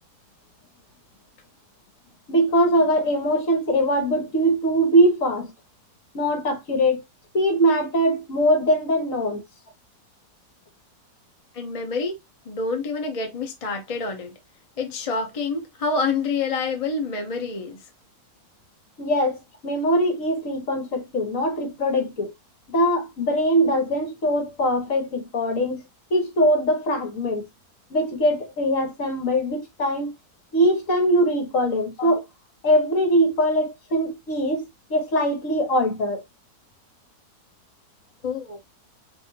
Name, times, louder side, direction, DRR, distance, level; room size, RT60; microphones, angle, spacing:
voice 1, 2.3-5.5 6.1-7.0 7.3-9.4 19.0-22.3 22.7-25.8 26.1-27.5 27.9-30.1 30.5-32.2 32.6-36.2, equal, 60° left, 1.6 m, -22 dB
voice 2, 11.5-12.2 12.5-14.3 14.8-17.8 32.0-32.2 38.2-38.6, left 4 dB, 30° left, 0.7 m, -27 dB
5.3 x 2.7 x 2.8 m
omnidirectional pair, 1.6 m